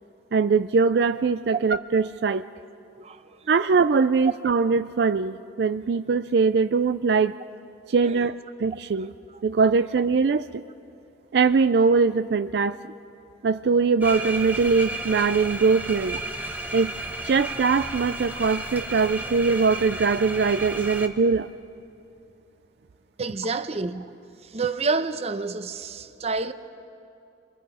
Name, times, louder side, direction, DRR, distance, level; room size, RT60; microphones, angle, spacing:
voice 1, 0.3-2.4 3.5-7.3 7.9-9.1 9.4-10.6 11.3-12.8 13.4-16.2 16.7-16.9 17.2-21.5, right 4 dB, 65° right, 0.4 m, -22 dB
voice 2, 3.0-3.4 8.0-8.2 23.2-24.1 24.4-26.5, right 4 dB, 35° right, 0.8 m, -29 dB
sound 1, 14.0-21.1, right 2 dB, 10° right, 1.3 m, -33 dB
29.5 x 24.0 x 5.0 m
head